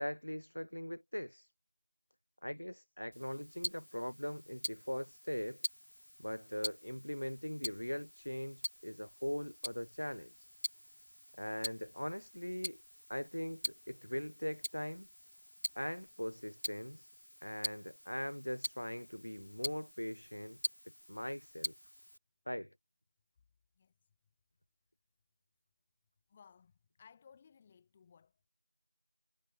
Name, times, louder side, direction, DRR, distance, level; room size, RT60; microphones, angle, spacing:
voice 1, 0.0-1.5 2.4-5.6 6.2-10.5 11.4-12.8 13.1-15.1 15.7-17.1 17.4-20.6 21.1-21.7 22.5-22.7, equal, 70° left, 1.0 m, -41 dB
Tick-tock, 3.1-22.2, left 1 dB, 35° left, 1.0 m, -45 dB
voice 2, 26.3-28.5, left 6 dB, 5° left, 0.9 m, -62 dB
figure-of-eight pair, 180°, 0 cm